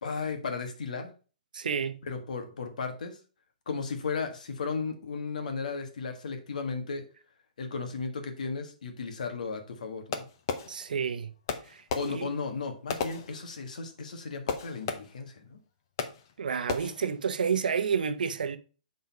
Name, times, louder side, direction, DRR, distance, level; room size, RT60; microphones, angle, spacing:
voice 1, 0.0-1.1 2.0-3.2 3.7-7.0 7.6-10.2 11.9-15.6, left 4 dB, 60° left, 1.6 m, -35 dB
voice 2, 1.5-2.0 10.7-11.3 11.7-12.3 16.4-18.6, right 6 dB, 75° right, 0.8 m, -30 dB
Fireworks, 10.1-11.1 11.5-13.9 14.5-15.4 16.0-16.4 16.7-17.2, left 6 dB, 30° left, 0.7 m, -36 dB
6.6 x 4.0 x 4.6 m
hypercardioid pair, 180°, 5 cm